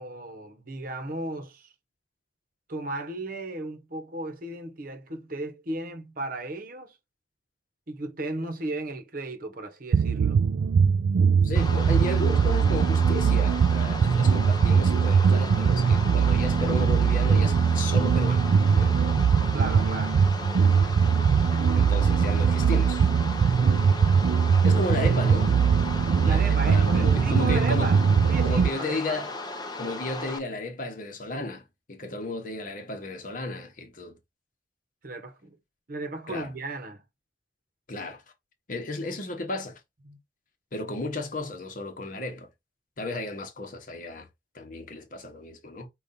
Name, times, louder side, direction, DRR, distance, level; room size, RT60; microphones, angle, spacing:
voice 1, 0.0-1.7 2.7-7.0 7.9-10.4 19.5-20.2 26.2-29.2 35.0-35.6 35.9-37.0 40.1-40.2, right 2 dB, 50° right, 0.9 m, -35 dB
sound 1, 9.9-28.7, right 6 dB, 70° right, 0.3 m, -21 dB
voice 2, 11.4-18.5 18.8-18.9 21.7-23.1 24.6-25.5 25.9-28.0 28.4-29.3 29.8-34.1 36.3-36.5 37.9-38.2 38.7-39.8 40.7-42.5 43.0-44.3 44.5-45.9, left 2 dB, 45° left, 1.0 m, -34 dB
sound 2, 11.5-30.4, left 2 dB, 20° left, 0.6 m, -36 dB
5.1 x 2.4 x 4.1 m
head